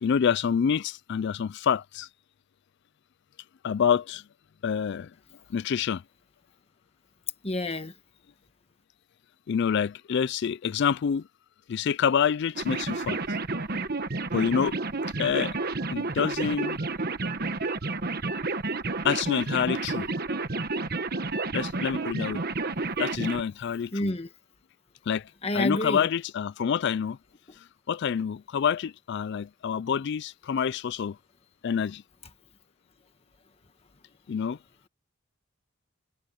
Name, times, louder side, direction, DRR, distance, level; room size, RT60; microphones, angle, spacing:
voice 1, 0.0-2.1 3.6-4.2 4.6-5.1 5.5-6.0 9.5-11.3 11.7-13.2 14.3-14.7 15.2-15.6 15.9-16.8 19.0-20.1 21.5-22.4 23.0-24.1 25.1-25.3 25.5-27.2 27.9-31.2 31.6-32.0 34.3-34.6, left 7 dB, 60° left, 0.4 m, -27 dB
voice 2, 7.4-7.9 23.9-24.3 25.4-26.1, left 1 dB, 30° left, 1.4 m, -28 dB
sound 1, 12.6-23.4, right 3 dB, 50° right, 1.4 m, -30 dB
head